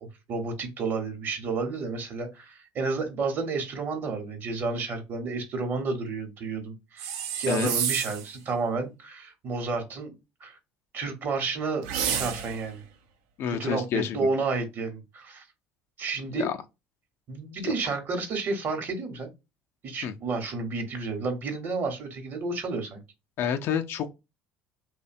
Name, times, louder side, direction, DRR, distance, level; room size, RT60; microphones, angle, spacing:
voice 1, 0.0-10.1 10.4-10.6 10.9-12.8 13.5-15.5 16.0-16.5 17.3-19.3 19.8-23.0, right 4 dB, 50° right, 0.9 m, -31 dB
sound 1, 7.0-8.3 11.8-12.7, right 8 dB, 80° right, 0.4 m, -30 dB
voice 2, 13.4-14.3 16.3-16.6 17.6-17.7 20.0-20.1 23.4-24.1, left 8 dB, 60° left, 0.4 m, -29 dB
2.6 x 2.2 x 2.5 m
supercardioid pair, 80°, 5 cm